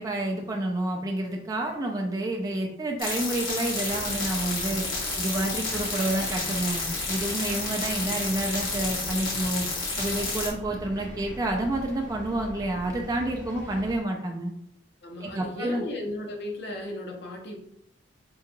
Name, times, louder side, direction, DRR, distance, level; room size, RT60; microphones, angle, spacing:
voice 1, 0.0-4.8 5.2-9.7 10.0-14.5 15.2-15.8, right 1 dB, 20° right, 0 dB, 0.3 m, -29 dB
sound 1, 3.0-10.5, left 3 dB, 85° left, 1.1 m, -31 dB
sound 2, 3.8-14.0, equal, 5° left, 0.9 m, -41 dB
voice 2, 15.0-17.6, left 1 dB, 55° left, 0 dB, 0.7 m, -35 dB
3.7 x 2.3 x 2.8 m, 0.72 s
head